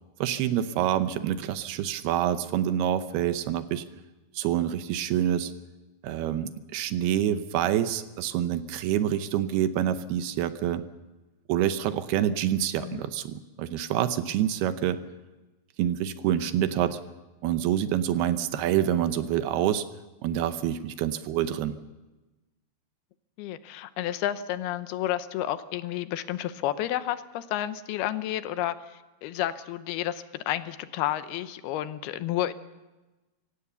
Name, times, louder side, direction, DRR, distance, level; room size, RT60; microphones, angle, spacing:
voice 1, 0.2-3.9 4.3-5.5 6.0-10.8 11.5-15.0 15.8-17.0 17.4-19.8 20.2-21.8, right 11 dB, 80° right, 11 dB, 2.8 m, -27 dB
voice 2, 23.4-32.5, left 12 dB, 80° left, 12 dB, 2.7 m, -31 dB
24.5 x 17.0 x 6.9 m, 1.1 s
omnidirectional pair, 4.6 m